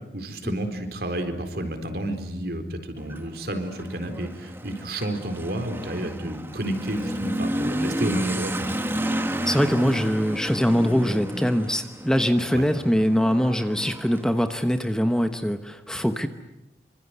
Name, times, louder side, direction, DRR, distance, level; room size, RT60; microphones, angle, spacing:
voice 1, 0.1-8.8 12.5-12.6, right 1 dB, 55° right, 7 dB, 4.1 m, -30 dB
Motorcycle / Accelerating revving vroom, 3.0-15.3, equal, 10° right, 1.6 m, -31 dB
voice 2, 9.4-16.3, equal, 5° left, 8 dB, 1.1 m, -23 dB
27.0 x 25.5 x 8.1 m, 0.95 s
head